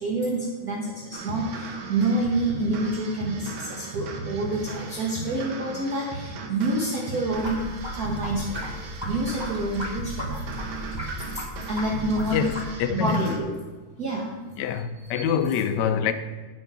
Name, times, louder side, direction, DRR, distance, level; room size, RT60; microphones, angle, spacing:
voice 1, 0.0-0.9 1.2-7.5 8.0-8.7 9.0-10.4 11.7-12.5 12.9-13.6 14.0-14.3 15.1-15.3, right 2 dB, 50° right, 1.5 m, -27 dB
sound 1, 1.1-13.4, right 3 dB, 75° right, 1.7 m, -36 dB
drippin drain, 7.3-12.7, left 1 dB, 15° right, 0.9 m, -36 dB
voice 2, 12.3-13.3 14.6-16.1, left 8 dB, 75° left, 1.0 m, -25 dB
9.3 x 5.2 x 5.9 m
omnidirectional pair, 2.3 m